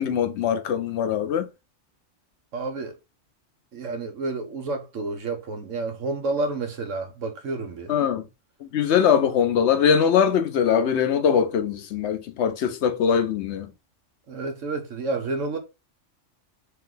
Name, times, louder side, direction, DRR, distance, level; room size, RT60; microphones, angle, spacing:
voice 1, 0.0-1.5 7.9-8.3 8.6-13.7, left 7 dB, 70° left, 0.9 m, -22 dB
voice 2, 2.5-2.9 3.7-7.9 14.3-15.6, right 3 dB, 80° right, 1.3 m, -30 dB
3.4 x 3.2 x 3.7 m
omnidirectional pair, 1.3 m